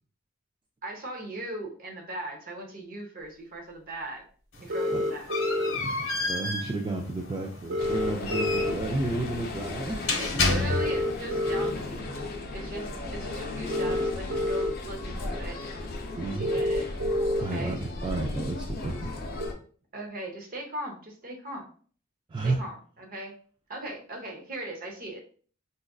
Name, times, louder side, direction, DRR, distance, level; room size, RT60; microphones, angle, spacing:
voice 1, 0.8-4.2 4.6-5.3 8.6-8.7 10.2-15.6 16.2-16.9 17.3-17.8 19.9-21.7 22.4-23.3 23.7-25.2, right 1 dB, 45° right, 1 dB, 0.8 m, -39 dB
sound 1, 4.5-11.2, left 3 dB, 65° left, 0.9 m, -31 dB
voice 2, 4.6-5.0 5.7-10.3 16.1-16.7 17.4-19.5 22.3-22.6, right 2 dB, 20° right, 0 dB, 0.3 m, -32 dB
sound 2, 4.7-5.7 7.7-8.7 10.7-11.7 13.7-14.7 15.2-15.3 16.4-17.4 19.4-19.5, left 1 dB, 80° right, 0.8 m, -27 dB
sound 3, 7.8-19.5, left 2 dB, 45° left, 0.5 m, -36 dB
4.0 x 2.5 x 2.3 m, 0.43 s
head